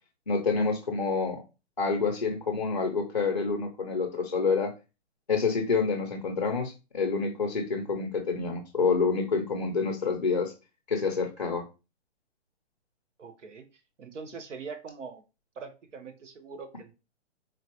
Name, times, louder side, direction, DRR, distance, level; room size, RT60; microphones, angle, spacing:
voice 1, 0.3-1.4 1.8-4.7 5.3-10.5 10.9-11.7, left 4 dB, 40° left, 3 dB, 0.4 m, -28 dB
voice 2, 13.2-13.7 14.0-15.2 15.6-16.9, right 5 dB, 90° right, 7 dB, 0.9 m, -42 dB
3.8 x 2.2 x 2.8 m, 0.29 s
hypercardioid pair, 180°, 36 cm